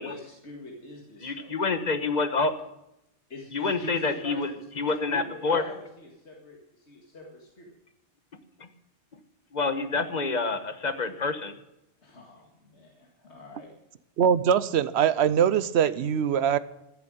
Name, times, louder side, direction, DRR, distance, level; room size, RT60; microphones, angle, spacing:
voice 1, 0.0-1.6 3.3-7.7 12.0-13.7, left 1 dB, 75° left, -1 dB, 2.3 m, -45 dB
voice 2, 1.2-2.5 3.5-4.5 4.8-5.6 8.6-8.7 9.5-11.5, left 3 dB, 40° left, 9 dB, 1.2 m, -27 dB
voice 3, 14.2-16.6, right 8 dB, 75° right, 16 dB, 1.0 m, -22 dB
14.5 x 7.7 x 9.0 m, 0.88 s
omnidirectional pair, 1.1 m